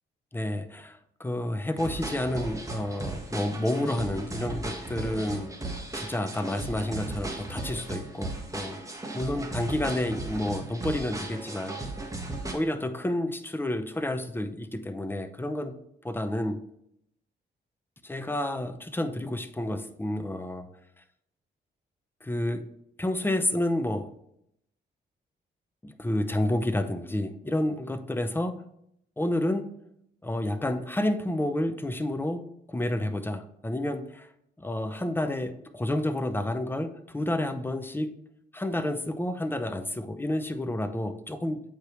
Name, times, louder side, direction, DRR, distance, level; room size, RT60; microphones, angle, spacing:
voice 1, 0.3-8.8 9.1-11.8 12.5-15.8 16.0-16.6 18.0-20.7 22.2-22.7 23.0-24.1 25.8-28.6 29.2-29.7 30.2-34.3 34.6-38.1 38.5-41.6, left 1 dB, 10° left, 9 dB, 0.7 m, -30 dB
sound 1, 1.8-12.5, right 2 dB, 15° right, 1.5 m, -36 dB
8.2 x 4.9 x 3.1 m, 0.75 s
cardioid pair, 80°, 19 cm